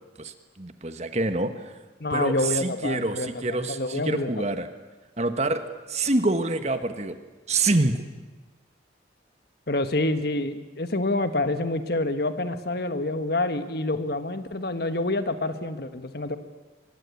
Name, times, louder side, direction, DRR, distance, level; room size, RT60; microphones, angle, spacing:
voice 1, 0.2-1.7 2.1-4.7 5.2-5.6 5.9-7.2 7.5-8.0, right 2 dB, 35° right, 9 dB, 1.4 m, -26 dB
voice 2, 2.0-4.3 9.7-16.4, left 2 dB, 55° left, 10 dB, 1.5 m, -27 dB
24.0 x 21.0 x 8.5 m, 1.2 s
head